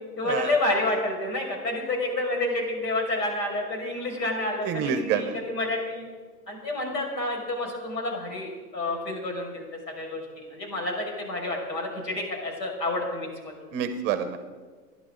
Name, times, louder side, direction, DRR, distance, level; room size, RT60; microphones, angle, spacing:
voice 1, 0.2-6.0 6.5-10.2 10.5-13.5, left 2 dB, 85° left, 0 dB, 5.7 m, -29 dB
voice 2, 4.6-5.4 13.7-14.4, right 8 dB, 25° right, 10 dB, 0.7 m, -27 dB
25.0 x 11.0 x 3.9 m, 1.5 s
hypercardioid pair, 150°, 48 cm